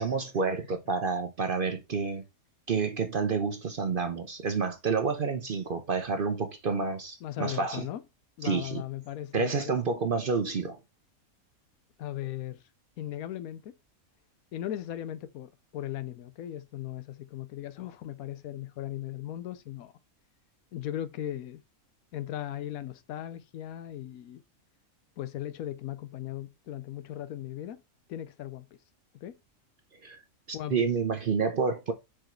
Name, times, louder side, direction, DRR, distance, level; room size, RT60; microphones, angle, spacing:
voice 1, 0.0-2.2 2.7-7.9 8.4-8.8 9.3-10.8 30.0-30.2 30.5-31.9, right 4 dB, 50° right, 0.7 m, -29 dB
voice 2, 7.2-8.0 8.4-9.7 12.0-12.6 13.0-13.8 14.5-19.9 20.7-21.6 22.1-24.4 25.2-27.8 28.1-28.7 29.2-29.4 30.5-30.8, left 12 dB, 80° left, 1.1 m, -37 dB
4.9 x 4.8 x 4.3 m
omnidirectional pair, 1.5 m